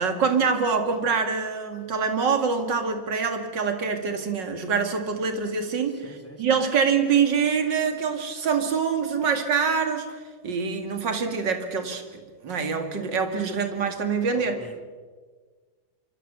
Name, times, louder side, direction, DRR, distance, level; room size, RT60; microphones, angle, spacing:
voice 1, 0.0-6.0 6.4-10.1 10.4-14.5, right 5 dB, 60° right, 6 dB, 2.9 m, -25 dB
voice 2, 5.9-6.6 14.3-14.8, right 1 dB, 5° left, 5 dB, 2.1 m, -41 dB
26.0 x 24.0 x 6.9 m, 1.5 s
omnidirectional pair, 2.2 m